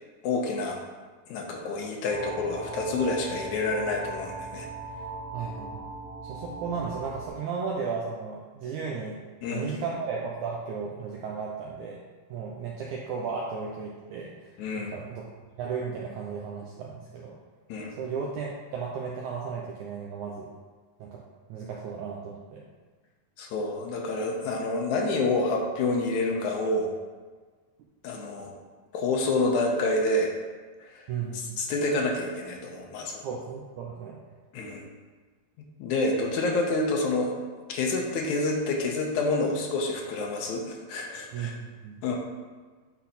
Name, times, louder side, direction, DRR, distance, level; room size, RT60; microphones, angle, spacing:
voice 1, 0.2-0.8 1.3-4.7 9.4-9.8 14.6-14.9 17.7-17.9 23.4-26.9 28.0-28.5 28.9-30.3 30.9-31.0 31.6-33.2 34.5-34.8 35.6-37.3 37.7-41.5 42.0-42.2, left 2 dB, 70° left, 0 dB, 1.9 m, -28 dB
sound 1, 2.1-7.3, right 3 dB, 50° left, 2.3 m, -39 dB
voice 2, 5.3-5.9 6.2-9.2 9.5-12.0 12.3-14.6 14.9-15.3 15.6-17.4 18.0-20.5 21.0-21.2 21.5-22.6 31.1-31.6 33.2-34.2 41.3-42.1, right 5 dB, 85° right, -2 dB, 1.7 m, -35 dB
10.0 x 4.1 x 4.2 m, 1.4 s
omnidirectional pair, 4.3 m